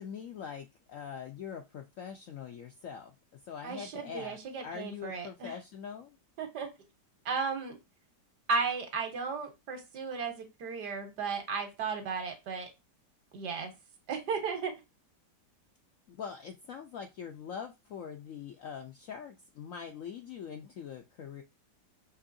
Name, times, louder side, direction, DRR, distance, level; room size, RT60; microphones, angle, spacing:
voice 1, 0.0-4.4 4.6-6.2 16.1-21.4, left 7 dB, 70° left, 5 dB, 0.8 m, -43 dB
voice 2, 3.6-5.5 6.4-6.7 7.2-7.8 8.5-12.7 13.3-13.7 14.1-14.7, right 5 dB, 65° right, 5 dB, 1.7 m, -35 dB
5.4 x 3.1 x 2.5 m, 0.24 s
omnidirectional pair, 2.0 m